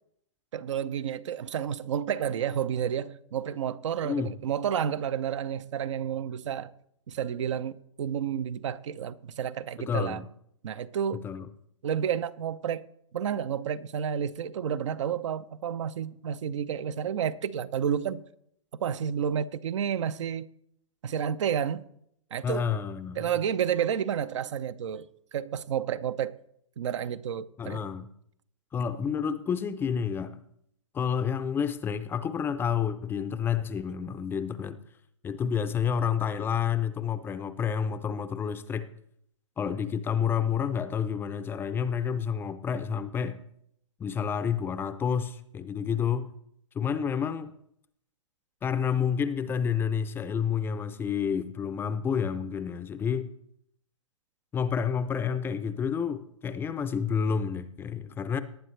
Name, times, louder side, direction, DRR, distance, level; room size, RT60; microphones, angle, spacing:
voice 1, 0.5-6.7 7.1-10.2 10.6-11.2 11.8-12.8 13.1-18.2 18.7-20.5 21.0-21.9 22.3-22.6 23.2-26.3 26.8-27.9, right 8 dB, 65° right, 0.7 m, -30 dB
voice 2, 4.0-4.3 9.9-10.3 11.2-11.5 22.4-23.2 27.6-28.1 28.7-30.4 30.9-34.8 35.2-38.9 39.6-43.4 44.0-46.3 46.7-47.5 48.6-53.3 54.5-58.4, left 7 dB, 15° left, 0.5 m, -29 dB
19.0 x 9.2 x 3.2 m
hypercardioid pair, 130°, 17 cm